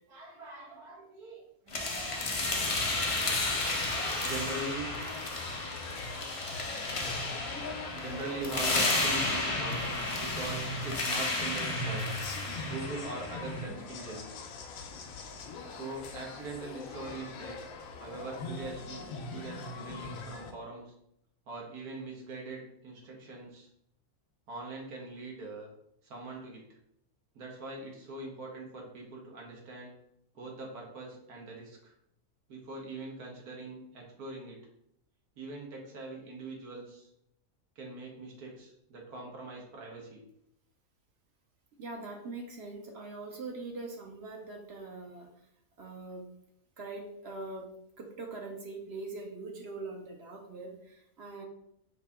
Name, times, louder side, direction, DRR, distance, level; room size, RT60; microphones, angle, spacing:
voice 1, 0.1-4.9 7.9-9.8 10.1-12.1 12.6-14.4 15.7-17.6 18.0-20.9 21.5-23.7 24.5-25.7 26.0-26.6 27.3-29.9 30.3-31.9 32.5-34.6 35.4-37.1 37.7-40.2, right 2 dB, 90° right, -2 dB, 1.7 m, -42 dB
sound 1, 1.7-13.7, left 2 dB, 55° left, 0.3 m, -33 dB
sound 2, 2.5-20.5, left 2 dB, 75° left, 1.0 m, -42 dB
voice 2, 41.7-45.3 45.8-46.3 46.8-47.7 48.0-51.4, right 3 dB, 60° right, 2 dB, 0.7 m, -42 dB
5.0 x 2.8 x 3.4 m, 0.76 s
omnidirectional pair, 1.6 m